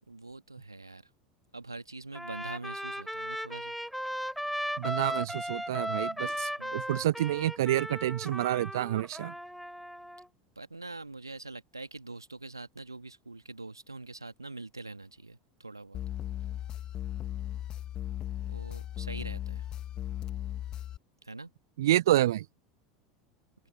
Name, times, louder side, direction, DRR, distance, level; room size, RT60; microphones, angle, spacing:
voice 1, 0.1-1.0 1.5-3.7 6.6-6.8 10.6-16.0 18.5-19.6 21.3-21.5, right 3 dB, 85° right, 2.0 m, -44 dB
Trumpet, 2.1-10.3, equal, ahead, 4.0 m, -36 dB
voice 2, 4.8-9.3 21.8-22.4, right 14 dB, 65° right, 0.5 m, -28 dB
sound 1, 15.9-21.0, left 11 dB, 35° left, 2.0 m, -37 dB
open air
figure-of-eight pair, 75°, 2 cm